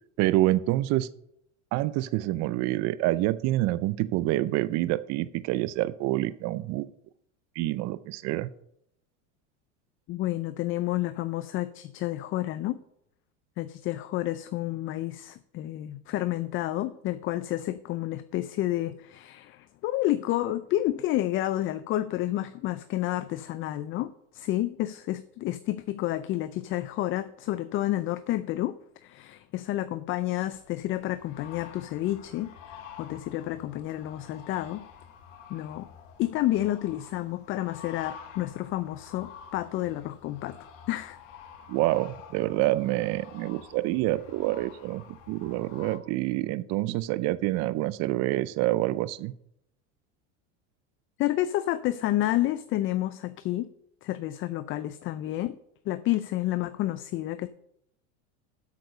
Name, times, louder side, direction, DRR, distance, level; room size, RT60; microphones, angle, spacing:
voice 1, 0.2-1.1 1.7-6.9 7.6-8.5 41.7-49.3, right 16 dB, 45° right, 17 dB, 0.5 m, -27 dB
voice 2, 10.1-12.8 13.6-28.7 29.0-32.5 33.0-34.9 35.5-35.9 36.2-40.6 40.9-41.2 51.2-53.7 54.0-55.6 55.9-57.5, left 15 dB, 35° left, 13 dB, 0.4 m, -30 dB
sound 1, 30.5-46.0, left 8 dB, 80° left, 1.5 m, -48 dB
8.3 x 6.5 x 6.5 m, 0.75 s
supercardioid pair, 115°, 37 cm